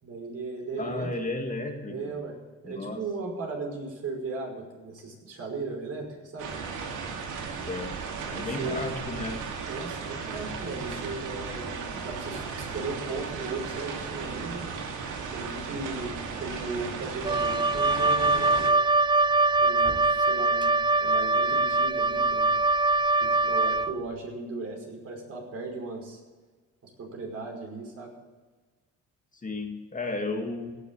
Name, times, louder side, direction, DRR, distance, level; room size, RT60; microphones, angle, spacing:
voice 1, 0.0-1.1 1.9-2.4 2.6-6.5 8.3-8.9 9.7-14.7 15.3-18.7 19.6-22.5 23.2-26.2 27.0-28.1, right 3 dB, 50° right, 0 dB, 5.3 m, -37 dB
voice 2, 0.8-2.2 2.6-3.0 7.5-8.0 8.3-9.5 29.3-30.8, left 2 dB, 25° left, 3 dB, 2.1 m, -33 dB
sound 1, 6.4-18.7, right 5 dB, 80° right, 2.6 m, -36 dB
Wind instrument woodwind instrument, 17.2-23.9, right 3 dB, 15° right, 0.4 m, -23 dB
17.0 x 6.8 x 8.5 m, 1.3 s
cardioid pair, 90°, 30 cm